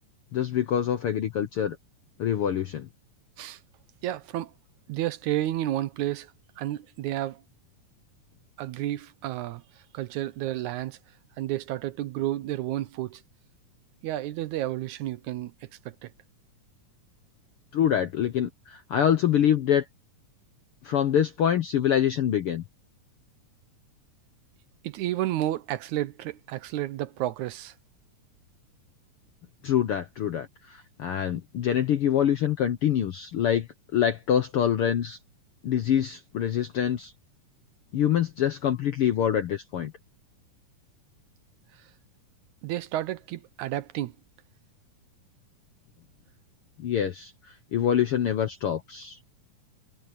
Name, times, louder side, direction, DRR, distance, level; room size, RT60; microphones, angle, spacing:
voice 1, 0.3-1.8 2.2-2.9 17.7-19.8 20.8-22.6 29.6-33.7 33.9-35.2 35.6-37.1 37.9-39.9 46.8-47.3 47.7-49.2, left 9 dB, 70° left, 1.3 m, -25 dB
voice 2, 4.0-4.5 4.9-7.4 8.6-11.0 11.4-13.2 14.0-16.1 24.8-27.8 41.7-41.9 42.6-44.1, right 14 dB, 75° right, 2.0 m, -31 dB
omnidirectional pair, 3.7 m